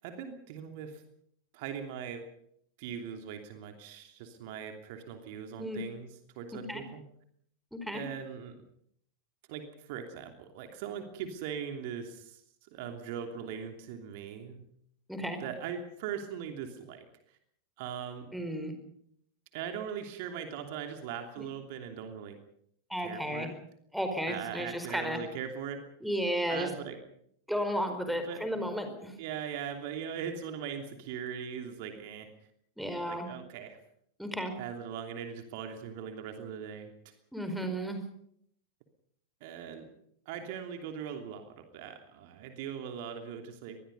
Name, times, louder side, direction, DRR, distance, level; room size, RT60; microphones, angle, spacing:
voice 1, 0.0-1.0 1.5-2.3 2.8-7.0 7.9-8.6 9.5-12.4 12.7-14.6 15.4-17.4 17.8-18.3 19.5-22.4 23.0-23.5 24.3-25.9 26.5-27.0 28.3-28.4 29.2-32.3 33.1-33.8 34.6-36.9 39.4-39.9 40.3-43.8, right 8 dB, 50° right, 5 dB, 3.0 m, -40 dB
voice 2, 7.7-8.0 15.1-15.4 18.3-18.7 21.4-21.5 22.9-23.5 23.9-25.2 26.0-26.7 27.5-29.1 32.8-33.3 34.2-34.5 37.3-38.0, equal, ahead, 7 dB, 4.8 m, -33 dB
24.5 x 21.0 x 5.5 m, 0.68 s
figure-of-eight pair, 90°, 0 cm